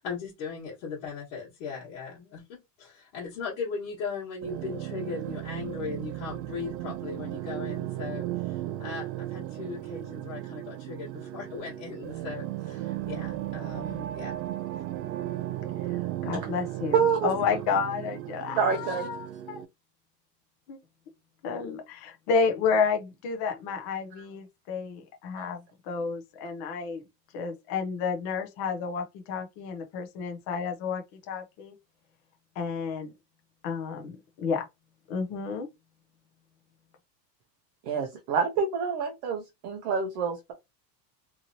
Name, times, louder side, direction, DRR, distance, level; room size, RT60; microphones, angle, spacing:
voice 1, 0.0-14.4 14.7-14.8, left 5 dB, 60° left, 1.3 m, -38 dB
sound 1, 4.4-19.7, right 14 dB, 80° right, 0.6 m, -35 dB
voice 2, 16.2-19.6 20.7-20.8 21.4-27.0 27.3-31.7 32.6-33.1 33.6-34.7 35.1-35.7, left 5 dB, 30° left, 0.4 m, -31 dB
voice 3, 16.9-17.3 18.5-19.1 25.3-25.5 37.8-40.5, right 6 dB, 35° right, 0.4 m, -27 dB
2.9 x 2.7 x 2.6 m
supercardioid pair, 170°, 50 cm